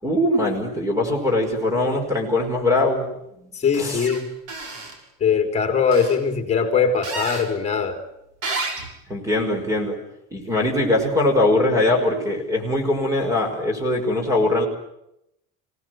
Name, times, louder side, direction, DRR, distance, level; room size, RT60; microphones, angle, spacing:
voice 1, 0.0-3.1 3.8-4.1 9.1-10.0 10.3-14.7, left 2 dB, 10° right, 5 dB, 5.3 m, -21 dB
voice 2, 3.5-4.3 5.2-8.0, left 6 dB, 20° left, 5 dB, 3.8 m, -21 dB
sound 1, 3.9-4.2 4.5-4.9 5.9-6.2 7.0-7.5 8.4-8.9, right 3 dB, 60° right, 6.3 m, -30 dB
26.5 x 18.5 x 9.4 m, 0.82 s
cardioid pair, 165°, 33 cm